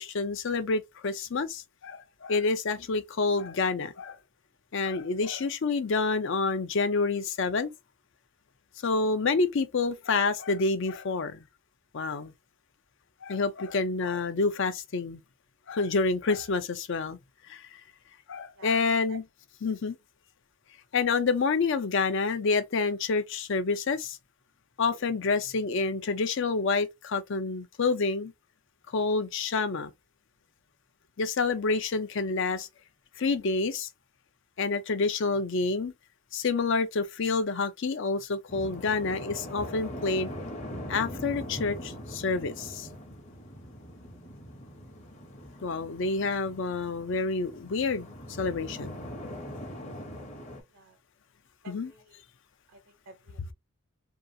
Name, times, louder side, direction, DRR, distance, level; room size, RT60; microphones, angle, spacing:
voice 1, 0.0-4.2 4.7-7.7 8.8-11.4 11.9-12.3 13.2-15.2 15.7-17.2 17.5-17.7 18.3-19.2 19.6-20.0 20.9-24.2 24.8-28.3 28.9-29.9 31.2-32.7 33.2-33.9 34.6-35.9 36.3-40.3 40.9-42.9 45.6-48.1 48.4-49.0 51.7-51.9, left 4 dB, 55° left, 0.5 m, -28 dB
voice 2, 18.6-19.2 50.7-51.0 51.6-52.2 52.7-53.5, right 3 dB, 65° right, 0.6 m, -53 dB
sound 1, 38.5-50.6, equal, 30° left, 0.8 m, -41 dB
2.8 x 2.4 x 2.6 m
head